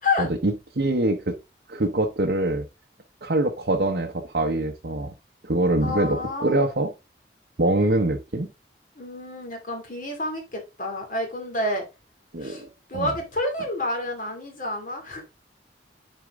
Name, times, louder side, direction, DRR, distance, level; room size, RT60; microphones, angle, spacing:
voice 1, 0.2-1.4 1.7-2.7 3.2-5.1 5.4-6.9 7.6-8.5 12.3-13.1, right 2 dB, 65° right, 0.9 m, -24 dB
voice 2, 5.8-6.7 9.0-11.8 12.4-12.6 12.9-15.2, left 2 dB, 50° left, 2.6 m, -29 dB
9.5 x 4.5 x 3.6 m
head